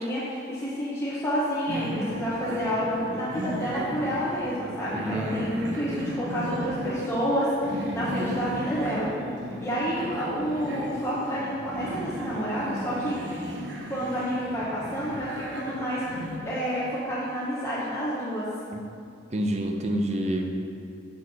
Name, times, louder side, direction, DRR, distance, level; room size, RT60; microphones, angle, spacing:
voice 1, 0.0-9.1 9.6-13.6 13.9-16.0 16.4-18.5, equal, 15° left, -10 dB, 1.0 m, -29 dB
sound 1, 1.7-16.4, equal, 90° right, 0.9 m, -35 dB
voice 2, 4.9-5.5 18.7-18.8 19.3-20.5, right 1 dB, 35° right, 3 dB, 0.6 m, -28 dB
6.7 x 6.1 x 4.1 m, 2.4 s
head